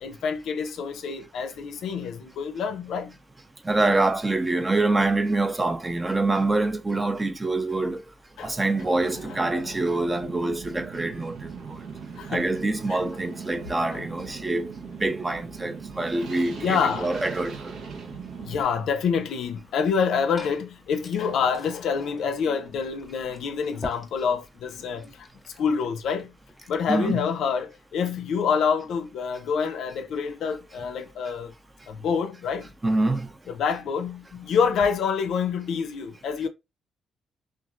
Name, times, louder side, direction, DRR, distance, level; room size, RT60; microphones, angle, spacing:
voice 1, 0.0-3.1 8.4-8.6 9.4-9.5 12.2-12.5 12.9-13.0 13.9-14.1 16.6-17.1 18.4-25.3 25.6-26.3 26.7-31.5 31.9-32.7 33.5-36.5, left 6 dB, 75° left, 0.5 m, -27 dB
voice 2, 3.6-8.0 8.4-11.8 12.3-14.7 15.0-17.7 26.9-27.2 32.8-33.3, right 2 dB, 20° right, 0.5 m, -25 dB
sound 1, 8.8-18.6, right 6 dB, 80° right, 0.8 m, -39 dB
Liquid, 19.9-26.9, left 1 dB, 15° left, 0.8 m, -46 dB
3.0 x 2.4 x 2.4 m
cardioid pair, 90°, 0 cm